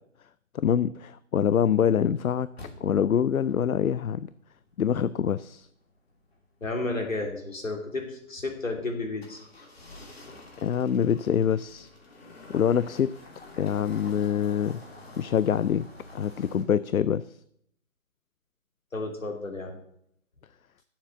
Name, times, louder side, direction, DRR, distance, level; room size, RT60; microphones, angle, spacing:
voice 1, 0.5-2.5 2.8-4.3 4.8-5.7 10.6-11.9 12.5-13.1 13.6-14.8 15.2-15.9 16.1-17.2, left 8 dB, 85° left, 17 dB, 0.5 m, -25 dB
sound 1, 2.6-16.6, left 2 dB, 45° left, 2.6 m, -49 dB
voice 2, 6.6-9.4 18.9-19.8, left 2 dB, 70° left, 3 dB, 2.9 m, -32 dB
8.3 x 7.4 x 8.1 m, 0.72 s
figure-of-eight pair, 155°, 41 cm